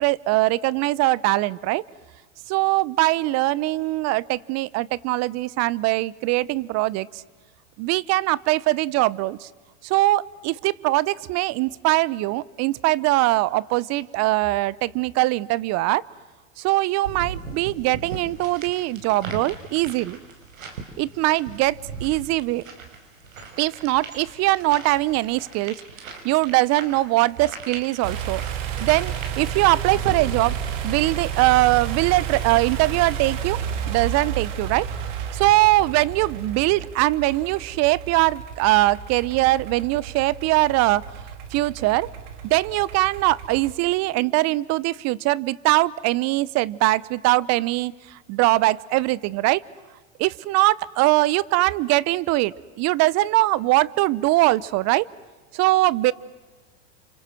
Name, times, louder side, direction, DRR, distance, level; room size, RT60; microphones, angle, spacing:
voice 1, 0.0-1.8 2.5-7.2 7.8-9.5 9.8-16.0 16.6-20.2 21.0-22.6 23.6-25.7 26.2-28.4 28.8-30.6 30.8-33.6 33.9-34.9 35.3-41.0 41.5-42.1 42.4-49.6 50.2-55.0 55.5-56.1, right 19 dB, 40° right, 23 dB, 0.8 m, -21 dB
sound 1, 17.0-31.0, right 5 dB, 90° right, 5.5 m, -38 dB
sound 2, 28.0-43.7, right 8 dB, 70° right, 3.1 m, -32 dB
29.0 x 26.0 x 7.7 m, 1.3 s
hypercardioid pair, 110°, 39 cm